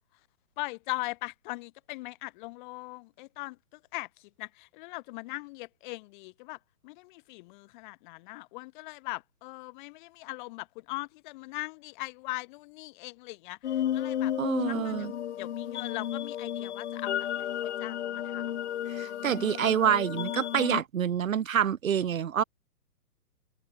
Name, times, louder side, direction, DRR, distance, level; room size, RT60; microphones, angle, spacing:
voice 1, 0.6-14.3 14.6-18.6 18.9-19.6, left 23 dB, 30° left, 6.7 m, -40 dB
sound 1, 13.6-20.8, left 11 dB, 45° left, 1.2 m, -33 dB
voice 2, 14.4-15.1 18.9-22.4, right 8 dB, 60° right, 3.9 m, -27 dB
open air
hypercardioid pair, 145°, 46 cm